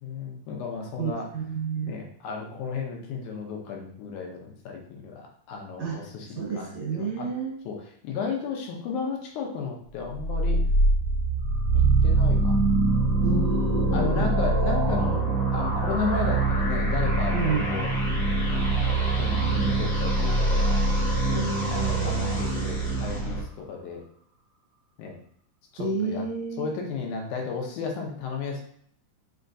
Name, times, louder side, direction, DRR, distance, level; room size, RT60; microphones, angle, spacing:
voice 1, 0.0-1.3 1.9-7.3 7.7-10.6 11.7-12.7 13.9-15.2 15.5-17.9 18.4-21.1 21.7-24.0 25.0-25.2 25.7-26.3 26.6-28.6, left 5 dB, 75° left, 1 dB, 2.2 m, -34 dB
voice 2, 1.0-2.0 5.8-6.0 6.4-7.5 13.2-14.3 17.3-17.7 21.3-22.1 25.8-26.7, right 4 dB, 60° right, -4 dB, 2.3 m, -30 dB
sound 1, 10.1-23.4, right 2 dB, 60° left, 0.8 m, -24 dB
sound 2, 11.4-23.9, right 4 dB, 80° right, 2.2 m, -40 dB
5.3 x 3.6 x 2.6 m, 0.63 s
omnidirectional pair, 3.8 m